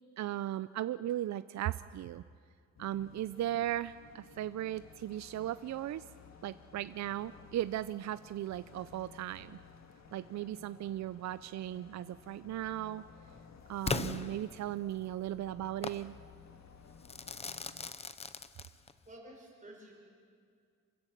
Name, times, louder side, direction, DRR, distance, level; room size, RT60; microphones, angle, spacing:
voice 1, 0.2-2.2 2.8-6.0 6.4-9.6 10.1-13.0 13.7-16.1, right 13 dB, 60° right, 14 dB, 0.5 m, -37 dB
sound 1, 2.8-17.9, left 5 dB, 60° left, 1.8 m, -56 dB
Crackle / Fireworks, 13.9-15.0 15.8-16.1 17.1-19.1, left 4 dB, 20° left, 0.6 m, -38 dB
voice 2, 18.7-19.9, right 1 dB, 25° right, -2 dB, 5.7 m, -53 dB
27.5 x 16.0 x 7.4 m, 2.2 s
wide cardioid pair, 160°, 31 cm